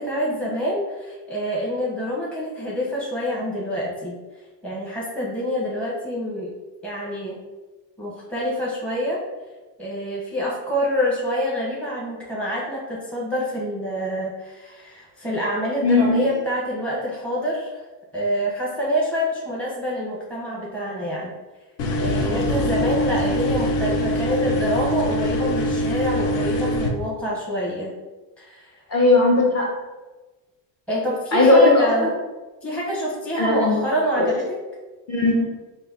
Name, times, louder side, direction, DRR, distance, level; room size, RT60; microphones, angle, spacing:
voice 1, 0.0-4.1 4.6-6.5 6.8-7.4 8.0-9.2 9.8-17.8 18.1-21.3 22.0-27.9 28.4-28.8 30.9-32.1 32.6-34.6, equal, 5° left, -6 dB, 0.8 m, -26 dB
voice 2, 15.8-16.2 28.9-29.7 31.3-31.9 33.4-33.8 34.2-34.3 35.1-35.5, left 2 dB, 30° left, -2 dB, 1.0 m, -17 dB
sound 1, 21.8-26.9, equal, 55° left, 0.7 m, -23 dB
3.9 x 2.7 x 3.7 m, 1.2 s
cardioid pair, 120°, 49 cm